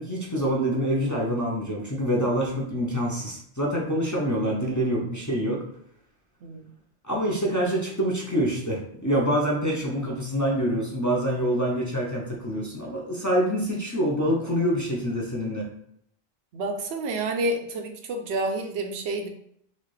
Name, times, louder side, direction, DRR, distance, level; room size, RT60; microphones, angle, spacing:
voice 1, 0.0-5.6 7.0-15.7, equal, 20° left, -4 dB, 0.5 m, -26 dB
voice 2, 6.4-6.7 16.5-19.3, right 2 dB, 90° right, 5 dB, 0.9 m, -29 dB
4.1 x 2.4 x 3.1 m, 0.70 s
omnidirectional pair, 1.1 m